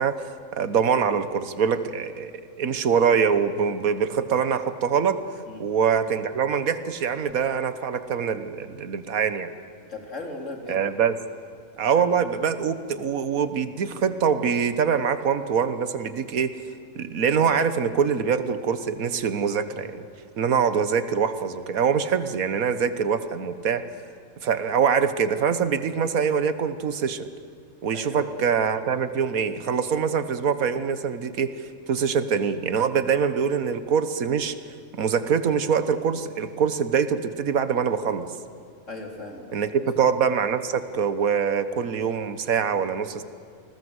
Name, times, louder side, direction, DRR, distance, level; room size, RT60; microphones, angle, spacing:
voice 1, 0.0-2.3 2.6-5.2 5.6-9.5 10.7-11.1 11.8-16.6 16.9-20.1 20.4-23.8 24.4-27.3 27.8-31.5 31.9-34.6 34.9-38.3 39.5-43.2, right 6 dB, 90° right, 12 dB, 1.6 m, -24 dB
voice 2, 9.9-10.8 11.9-12.1 27.9-28.3 38.9-39.9, left 2 dB, 60° left, 2 dB, 3.5 m, -37 dB
28.5 x 20.0 x 8.1 m, 2.3 s
omnidirectional pair, 1.4 m